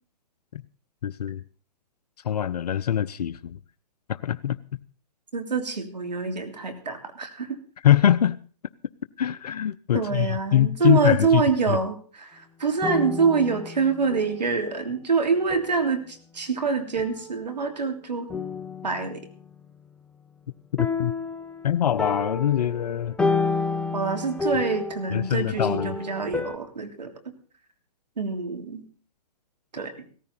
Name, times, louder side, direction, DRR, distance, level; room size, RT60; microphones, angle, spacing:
voice 1, 1.0-1.4 2.2-3.6 4.1-4.6 7.8-8.4 9.2-11.4 11.7-11.8 20.8-21.1 21.6-23.2 25.1-26.0, left 10 dB, 70° left, 0.7 m, -23 dB
voice 2, 5.3-7.6 9.9-18.3 18.8-19.3 23.9-27.1 28.2-28.8 29.7-30.1, right 5 dB, 85° right, 3.2 m, -26 dB
sound 1, 12.8-14.6 15.5-15.8 17.0-17.8 18.3-19.5 20.8-26.6, left 4 dB, 5° left, 0.6 m, -30 dB
17.0 x 14.0 x 4.2 m
hypercardioid pair, 130°, 21 cm